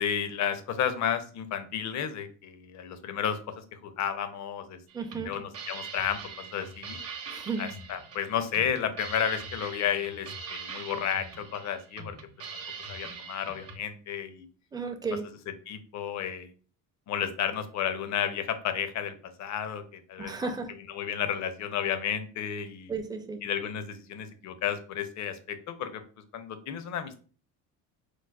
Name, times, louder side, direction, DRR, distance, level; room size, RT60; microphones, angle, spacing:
voice 1, 0.0-4.8 5.2-7.0 7.6-12.2 12.9-14.5 15.7-16.5 17.1-20.5 20.9-22.9 23.4-26.0 26.3-27.2, left 8 dB, 50° left, 10 dB, 0.6 m, -32 dB
voice 2, 4.9-5.3 7.3-7.6 14.7-15.3 20.2-20.7 22.9-23.4, right 4 dB, 10° right, 4 dB, 0.5 m, -33 dB
sound 1, 4.9-13.8, right 4 dB, 40° right, 0.8 m, -42 dB
4.7 x 2.0 x 2.3 m, 0.40 s
cardioid pair, 95°, 38 cm